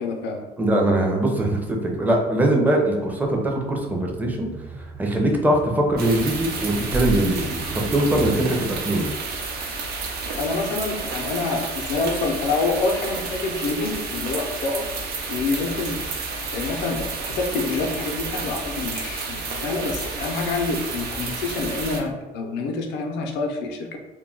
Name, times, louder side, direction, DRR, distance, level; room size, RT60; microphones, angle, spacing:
voice 1, 0.0-0.5 10.4-14.8 15.3-16.0 16.5-24.0, left 3 dB, 90° left, 3 dB, 0.5 m, -27 dB
voice 2, 0.6-4.5 5.0-9.1, right 1 dB, 10° right, 0 dB, 0.5 m, -22 dB
sound 1, 3.3-8.5, right 2 dB, 50° right, 0.9 m, -37 dB
sound 2, 6.0-22.0, right 3 dB, 70° right, 0.6 m, -31 dB
2.2 x 2.1 x 3.6 m, 1.1 s
cardioid pair, 110°, 17 cm